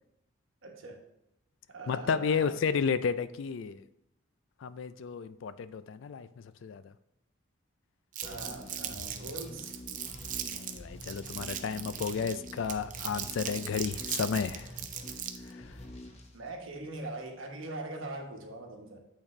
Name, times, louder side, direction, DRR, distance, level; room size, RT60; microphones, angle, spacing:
voice 1, 0.6-1.0 1.7-2.5 8.2-9.8 16.3-19.0, right 2 dB, 80° right, 2 dB, 1.1 m, -42 dB
voice 2, 1.9-3.8 4.6-6.9 10.4-14.7 15.5-15.6, left 6 dB, 70° left, 14 dB, 0.3 m, -32 dB
Crumpling crinkling, 8.1-15.5, right 9 dB, 40° right, 0.5 m, -38 dB
sound 1, 8.2-17.1, left 1 dB, 30° left, 0.8 m, -47 dB
8.6 x 4.1 x 3.2 m, 0.85 s
head